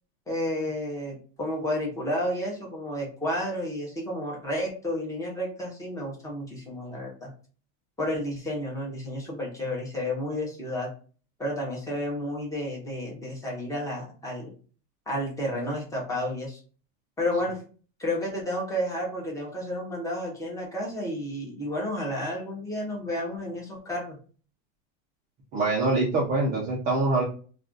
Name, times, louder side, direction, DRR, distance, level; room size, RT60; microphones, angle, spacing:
voice 1, 0.3-7.3 8.0-10.9 11.4-14.5 15.1-16.6 17.2-17.6 18.0-24.2, left 1 dB, 10° left, -2 dB, 0.7 m, -31 dB
voice 2, 25.5-27.2, right 2 dB, 20° right, -3 dB, 0.4 m, -24 dB
2.4 x 2.3 x 3.6 m, 0.40 s
supercardioid pair, 150°, 42 cm